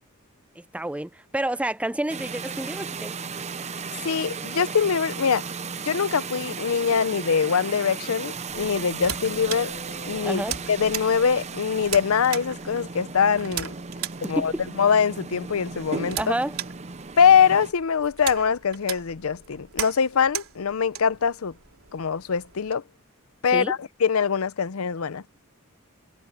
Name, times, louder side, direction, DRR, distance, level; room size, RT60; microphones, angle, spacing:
voice 1, 0.6-3.2 10.2-10.6 14.2-14.6 16.2-16.6 23.5-23.7, right 1 dB, 5° right, 0.4 m, -29 dB
sound 1, 2.1-17.7, right 4 dB, 30° right, 0.8 m, -35 dB
voice 2, 4.0-5.5 5.8-9.7 10.1-10.4 10.7-13.7 14.2-14.5 14.8-16.2 17.2-21.5 21.9-22.8 23.4-25.2, left 6 dB, 75° left, 0.6 m, -23 dB
sound 2, 8.5-22.7, right 10 dB, 75° right, 3.5 m, -38 dB
sound 3, 8.9-11.5, left 3 dB, 50° left, 6.6 m, -47 dB
head